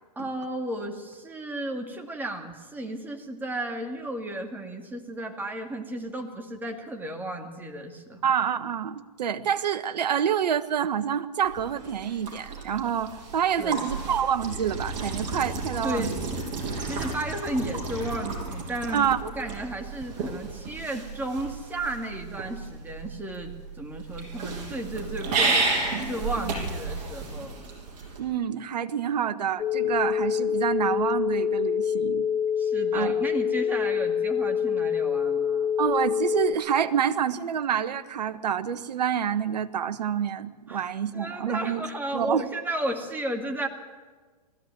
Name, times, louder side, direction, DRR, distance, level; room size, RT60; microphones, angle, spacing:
voice 1, 0.2-8.2 13.6-13.8 15.8-16.2 16.8-25.7 26.1-27.6 32.6-35.7 40.7-43.7, right 1 dB, 10° right, 3 dB, 2.4 m, -34 dB
voice 2, 8.2-16.1 18.9-19.2 26.4-26.5 28.2-32.3 32.9-33.2 35.8-41.8 42.1-42.4, right 8 dB, 75° right, 12 dB, 1.3 m, -27 dB
sound 1, 11.4-28.2, right 3 dB, 35° right, 6.9 m, -32 dB
sound 2, 29.6-36.6, left 8 dB, 25° left, 3.5 m, -26 dB
20.0 x 15.0 x 9.2 m, 1.4 s
hypercardioid pair, 125°, 21 cm